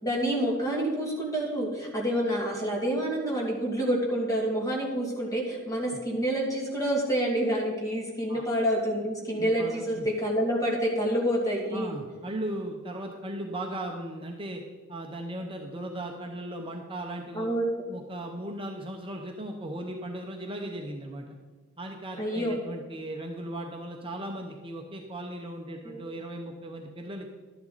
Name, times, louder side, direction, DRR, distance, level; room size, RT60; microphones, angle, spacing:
voice 1, 0.0-11.9 17.3-17.9 22.2-22.6 25.8-26.0, equal, 15° left, -2 dB, 2.5 m, -28 dB
voice 2, 9.4-10.1 11.7-14.6 14.9-17.5 17.9-21.4 21.8-27.3, right 1 dB, 25° right, 2 dB, 0.7 m, -37 dB
12.0 x 10.0 x 4.0 m, 1.3 s
head